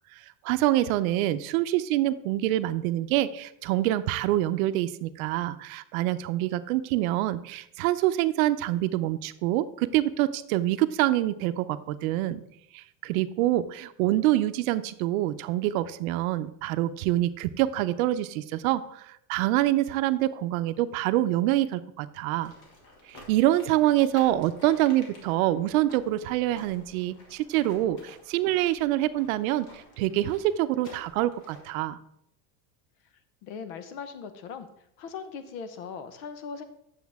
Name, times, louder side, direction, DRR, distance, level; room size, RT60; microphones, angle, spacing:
voice 1, 0.1-12.4 12.7-22.5 23.1-32.0, right 14 dB, 75° right, 13 dB, 0.6 m, -26 dB
sound 1, 22.4-31.8, left 2 dB, 45° left, 2.2 m, -51 dB
voice 2, 33.4-34.7 35.0-36.6, left 6 dB, 70° left, 10 dB, 1.1 m, -39 dB
9.3 x 7.1 x 3.5 m, 0.75 s
cardioid pair, 160°, 43 cm